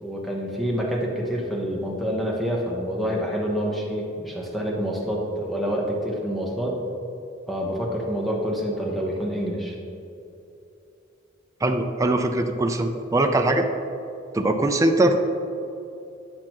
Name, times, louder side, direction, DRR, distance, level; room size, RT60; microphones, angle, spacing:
voice 1, 0.0-6.8 7.5-9.7, equal, ahead, -3 dB, 1.0 m, -27 dB
voice 2, 11.6-13.7 14.3-15.2, right 1 dB, 15° right, 5 dB, 0.4 m, -21 dB
9.7 x 5.8 x 3.0 m, 2.8 s
head